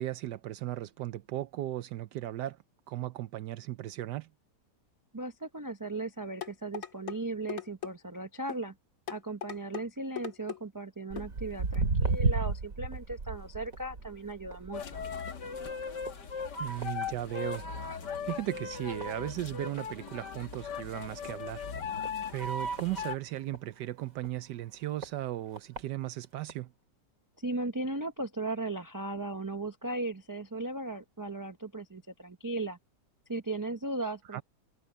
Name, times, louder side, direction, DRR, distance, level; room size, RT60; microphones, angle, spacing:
voice 1, 0.0-2.6 2.9-4.3 16.6-17.7 18.3-21.7 22.3-26.7 34.3-34.4, right 14 dB, 75° right, 1.2 m, -36 dB
voice 2, 5.1-8.7 9.1-15.0 27.4-32.8 33.3-34.4, right 2 dB, 25° right, 0.4 m, -37 dB
sound 1, 6.4-7.2 7.5-7.9 8.5-8.7 9.1-9.8 10.2-10.6 11.2-11.3 11.7-11.8, left 10 dB, 50° left, 2.3 m, -39 dB
Walk footsteps, 11.1-17.8 18.1-18.4 19.0-19.1 19.8-19.9 20.3-20.4 20.5-20.6 21.2-21.4 22.0-23.6 24.2-24.3 25.0-25.1 25.5-25.8 26.5-26.6, right 3 dB, 50° right, 2.5 m, -33 dB
sound 2, 14.7-23.2, left 4 dB, 70° left, 2.3 m, -38 dB
omnidirectional pair, 1.9 m